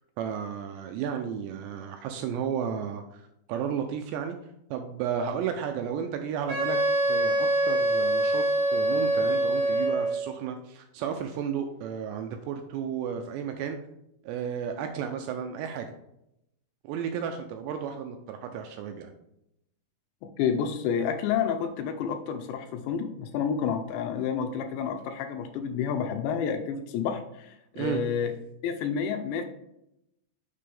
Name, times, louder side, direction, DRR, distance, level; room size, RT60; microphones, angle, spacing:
voice 1, 0.2-4.4 4.7-6.8 7.1-8.4 8.7-13.8 14.2-15.9 16.8-19.1 27.8-28.0, right 8 dB, 85° right, 5 dB, 2.5 m, -33 dB
Wind instrument woodwind instrument, 6.5-10.2, right 1 dB, 60° right, 2.3 m, -25 dB
voice 2, 20.4-28.3 28.6-29.4, left 7 dB, 80° left, 6 dB, 2.7 m, -29 dB
6.7 x 5.4 x 3.3 m, 0.81 s
omnidirectional pair, 5.4 m